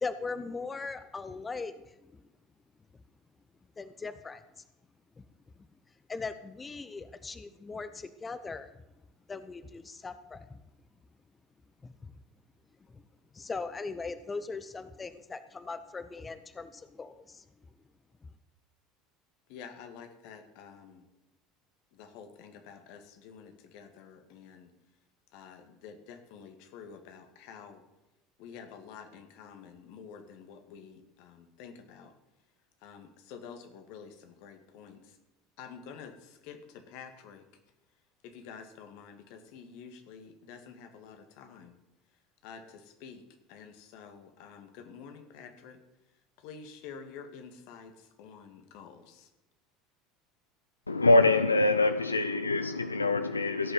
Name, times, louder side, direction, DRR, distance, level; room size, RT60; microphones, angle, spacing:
voice 1, 0.0-1.7 3.8-4.4 5.2-5.3 6.1-8.7 9.3-10.6 11.8-12.1 12.9-13.0 13.3-17.4, left 4 dB, 20° left, 12 dB, 0.8 m, -39 dB
voice 2, 19.5-21.1 21.9-24.7 25.3-27.8 28.4-32.1 32.8-35.2 35.6-37.4 38.2-41.7 42.4-43.2 43.5-45.8 46.4-49.3, left 6 dB, 55° left, 7 dB, 2.0 m, -49 dB
voice 3, 50.9-53.7, left 2 dB, 85° left, 10 dB, 0.5 m, -24 dB
16.5 x 6.9 x 7.7 m, 0.99 s
figure-of-eight pair, 70°, 0 cm